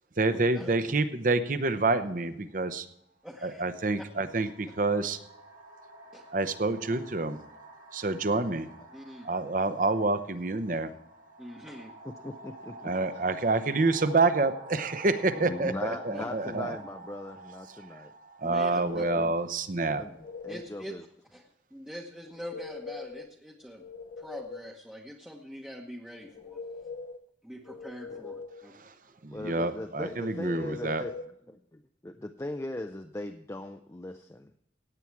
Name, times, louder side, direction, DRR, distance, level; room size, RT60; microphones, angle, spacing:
voice 1, 0.2-2.9 3.4-5.2 6.3-7.4 7.9-8.7 9.2-10.9 12.8-16.8 18.4-20.0 28.7-28.9 29.2-31.0, right 3 dB, 45° right, 11 dB, 0.8 m, -27 dB
sound 1, 2.5-2.6 3.6-20.2, right 2 dB, 80° right, 6.5 m, -49 dB
voice 2, 3.2-3.6 6.1-6.2 8.9-9.3 11.4-11.9 15.9-16.3 18.4-19.0 20.5-21.0 21.3-21.4 21.7-23.9 24.2-26.6 27.4-28.7, equal, 5° right, -1 dB, 0.9 m, -43 dB
voice 3, 12.0-12.9 15.3-18.1 18.7-19.3 20.0-20.1 20.4-21.0 28.1-28.3 29.3-31.2 31.5-34.5, left 1 dB, 15° left, 6 dB, 0.4 m, -39 dB
sound 2, 18.5-19.4 19.8-20.7 22.3-23.3 23.6-24.8 26.2-27.2 27.6-28.7 30.2-31.3, left 4 dB, 45° left, 0.7 m, -42 dB
17.0 x 8.7 x 4.6 m, 0.75 s
head